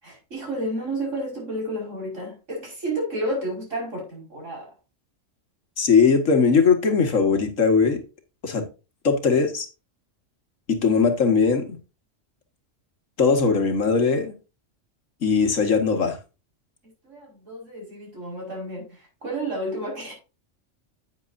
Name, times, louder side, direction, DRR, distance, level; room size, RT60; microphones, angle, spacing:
voice 1, 0.0-4.7 17.0-20.1, right 1 dB, 75° right, 5.7 m, -31 dB
voice 2, 5.8-8.0 8.4-8.6 9.0-9.7 10.7-11.8 13.2-14.3 15.2-16.2, left 5 dB, 85° left, 2.1 m, -20 dB
9.3 x 9.2 x 2.6 m
omnidirectional pair, 1.3 m